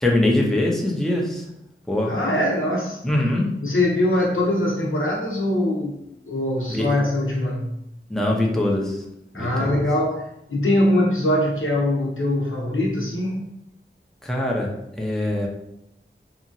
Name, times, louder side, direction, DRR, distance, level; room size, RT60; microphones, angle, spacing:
voice 1, 0.0-1.5 1.9-2.1 3.0-3.5 6.7-6.9 8.1-9.1 9.3-9.8 14.2-14.7 15.0-15.5, left 1 dB, ahead, -2 dB, 0.6 m, -22 dB
voice 2, 2.1-3.0 3.6-7.7 9.3-13.4, left 1 dB, 75° left, -2 dB, 0.8 m, -22 dB
2.9 x 2.5 x 2.6 m, 0.83 s
wide cardioid pair, 55°, 21 cm